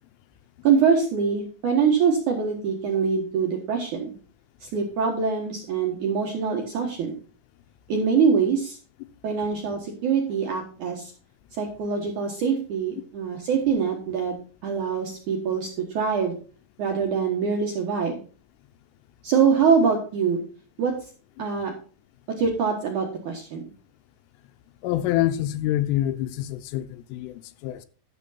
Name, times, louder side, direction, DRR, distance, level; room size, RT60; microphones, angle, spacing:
voice 1, 0.6-4.1 4.6-7.2 7.9-8.8 9.2-11.1 11.5-14.3 14.6-16.3 16.8-18.2 19.2-20.4 20.8-20.9 21.4-21.7 22.4-23.6, right 6 dB, 75° right, 1.8 m, -24 dB
voice 2, 24.8-27.9, left 13 dB, 90° left, 3.3 m, -26 dB
12.0 x 7.1 x 4.2 m
omnidirectional pair, 5.7 m